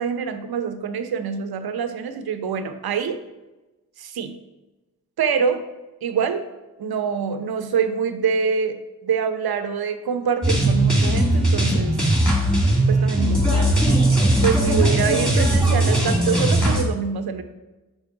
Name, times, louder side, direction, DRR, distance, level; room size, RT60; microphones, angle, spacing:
voice 1, 0.0-3.2 4.0-4.3 5.2-5.6 6.0-6.4 6.8-8.8 9.0-12.0 12.9-13.7 14.4-17.4, right 6 dB, 65° right, 9 dB, 0.8 m, -25 dB
sound 1, 10.4-16.8, right 1 dB, ahead, 2.2 m, -19 dB
5.3 x 4.2 x 4.7 m, 1.1 s
supercardioid pair, 40°, 40 cm